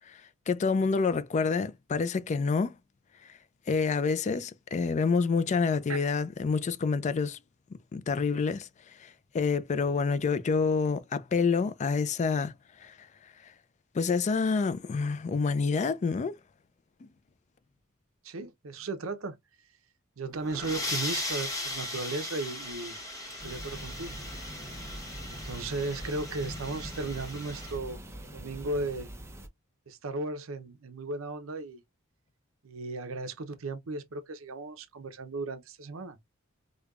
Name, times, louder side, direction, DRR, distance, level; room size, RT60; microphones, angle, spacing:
voice 1, 0.5-2.8 3.7-7.4 7.9-8.7 9.0-12.5 12.8-12.9 13.9-16.3, left 4 dB, 35° left, 0.3 m, -27 dB
voice 2, 18.2-19.4 20.2-23.0 23.3-24.2 25.3-28.0 28.3-29.1 29.9-31.8 32.6-36.2, right 2 dB, 70° right, 0.7 m, -36 dB
sound 1, 20.3-27.8, left 1 dB, 15° left, 1.0 m, -38 dB
sound 2, 23.4-29.5, right 1 dB, 15° right, 0.6 m, -43 dB
5.0 x 2.2 x 2.3 m
head